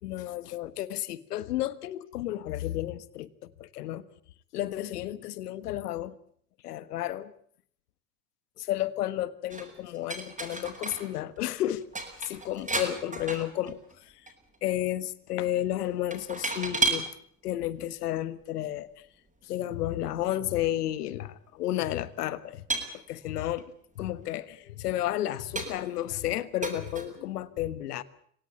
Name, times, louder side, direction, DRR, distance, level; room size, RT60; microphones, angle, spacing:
voice 1, 0.0-4.0 4.5-6.1 6.6-7.3 8.6-11.8 12.2-14.3 14.6-17.1 17.4-18.9 19.4-22.6 23.1-23.6 23.9-28.0, left 13 dB, 85° left, 16 dB, 1.5 m, -32 dB
sound 1, 9.5-11.1 11.4-11.5 11.8-13.9 14.3-14.6 16.1-17.1 18.0-18.1 20.5-20.6 20.8-21.0 21.8-21.9 22.7-23.6 24.2-24.3 24.9-25.0 25.6-26.0 26.6-27.1, right 3 dB, 15° right, 7.9 m, -33 dB
25.5 x 18.0 x 8.3 m, 0.62 s
hypercardioid pair, 80°, 45 cm